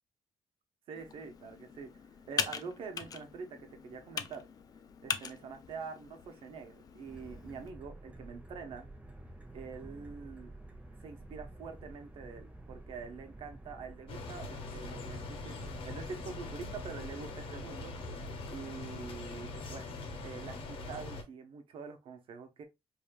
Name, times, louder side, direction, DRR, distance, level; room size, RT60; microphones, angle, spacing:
Computer keyboard, 0.9-7.7, left 6 dB, 40° left, 0.4 m, -41 dB
voice 1, 0.9-4.5 5.0-8.9 9.5-10.5 11.0-17.9 18.5-19.9 20.2-22.6, right 5 dB, 65° right, 1.0 m, -45 dB
sound 1, 7.0-17.1, right 2 dB, 15° right, 1.1 m, -50 dB
sound 2, 14.1-21.2, left 3 dB, 65° left, 1.1 m, -42 dB
5.0 x 2.7 x 2.3 m
cardioid pair, 160°, 10 cm